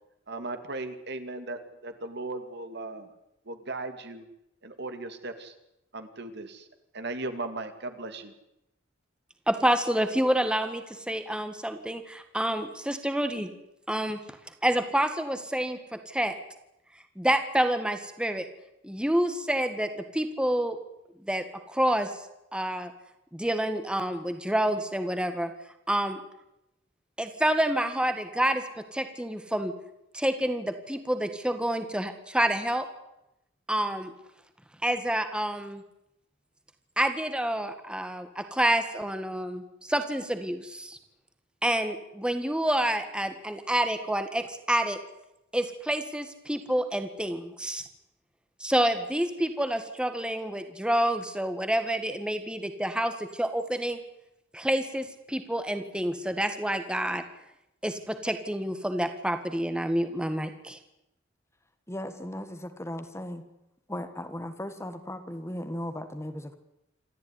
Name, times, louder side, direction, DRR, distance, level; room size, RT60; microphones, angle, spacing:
voice 1, 0.3-3.1 3.5-4.2 4.6-5.5 5.9-6.7 6.9-8.3, right 2 dB, 60° right, 8 dB, 2.4 m, -37 dB
voice 2, 9.5-13.5 13.9-14.2 14.6-16.3 17.2-18.5 18.8-20.8 21.3-22.1 22.5-22.9 23.3-25.5 25.9-26.2 27.2-28.6 28.9-29.7 30.1-32.9 33.7-34.1 34.8-35.8 37.0-41.0 41.6-45.0 45.5-47.8 48.6-54.0 54.5-57.2 57.8-60.8, right 1 dB, 5° right, 8 dB, 1.8 m, -28 dB
voice 3, 61.9-63.4 63.9-66.6, left 1 dB, 15° left, 9 dB, 1.6 m, -37 dB
27.5 x 13.5 x 9.8 m, 0.86 s
head